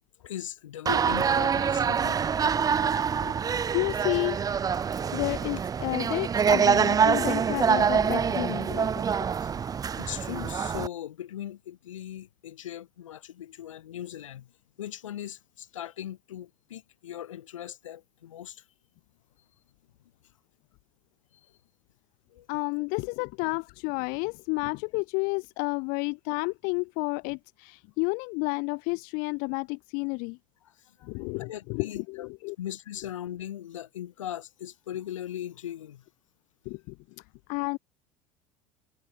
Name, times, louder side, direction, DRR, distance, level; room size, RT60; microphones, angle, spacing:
voice 1, 0.2-2.2 9.4-14.5 14.8-18.6 22.3-22.5 31.0-31.1 31.4-32.3 32.6-36.0, left 11 dB, 80° left, 2.8 m, -39 dB
sound 1, 0.9-10.9, right 7 dB, 25° right, 0.4 m, -25 dB
voice 2, 3.6-4.4 5.1-9.0 22.5-30.4 31.0-32.6 36.6-37.2 37.5-37.8, left 31 dB, 65° left, 1.3 m, -31 dB
hypercardioid pair, 70°, 16 cm